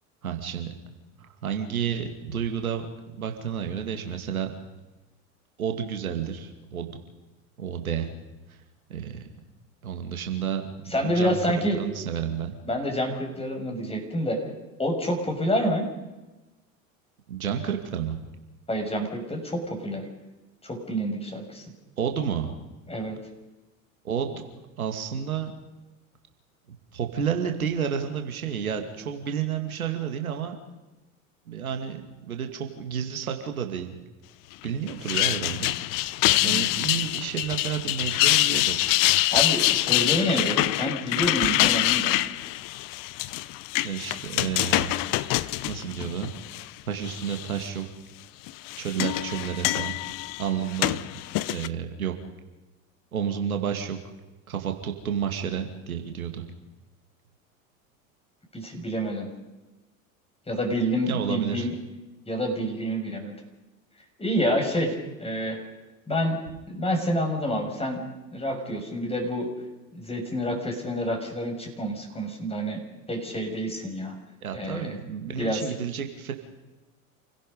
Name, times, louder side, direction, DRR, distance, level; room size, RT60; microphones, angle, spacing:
voice 1, 0.2-0.7 1.2-2.8 3.2-4.5 5.6-6.9 7.6-8.1 8.9-9.2 9.8-11.4 11.7-12.6 17.3-18.2 22.0-22.6 24.0-24.4 24.8-25.5 26.9-30.6 31.5-34.0 34.6-35.7 36.4-38.9 43.8-45.0 45.7-46.3 46.9-47.9 48.8-50.0 50.4-51.0 51.5-52.1 53.1-54.0 54.5-56.5 61.1-61.7 74.4-76.3, right 8 dB, 85° right, 5 dB, 2.4 m, -30 dB
voice 2, 10.9-11.8 12.6-14.4 14.8-15.9 18.7-20.0 20.6-21.6 22.9-23.2 36.4-36.7 39.3-42.2 58.5-59.3 60.5-61.8 62.3-63.3 64.2-65.6 66.1-66.4 66.7-68.0 68.3-69.5 69.9-72.8 73.1-74.1 74.5-75.0 75.2-75.7, equal, 15° left, 3 dB, 6.2 m, -28 dB
sound 1, 34.9-46.6 47.1-47.6 48.5-51.7, left 18 dB, 50° left, 0.9 m, -25 dB
28.5 x 17.0 x 5.4 m, 1.1 s
hypercardioid pair, 80°, 42 cm